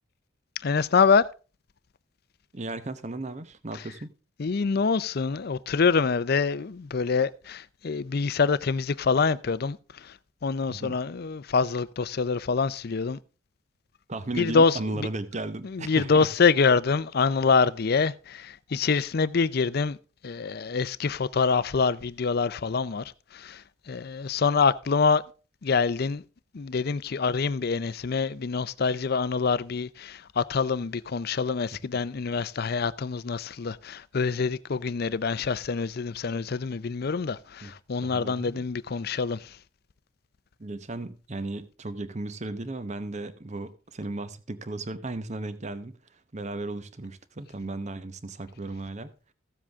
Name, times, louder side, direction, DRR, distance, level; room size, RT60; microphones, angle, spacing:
voice 1, 0.6-1.2 4.4-10.1 10.4-13.2 14.4-15.1 15.7-20.0 20.2-23.0 23.3-23.6 23.9-25.2 25.6-26.2 26.5-39.5, left 5 dB, 50° left, 0.5 m, -25 dB
voice 2, 2.5-4.1 10.7-11.0 14.1-16.3 37.6-37.7 38.0-38.6 40.6-49.1, right 2 dB, 35° right, 0.8 m, -35 dB
14.5 x 7.5 x 3.5 m
head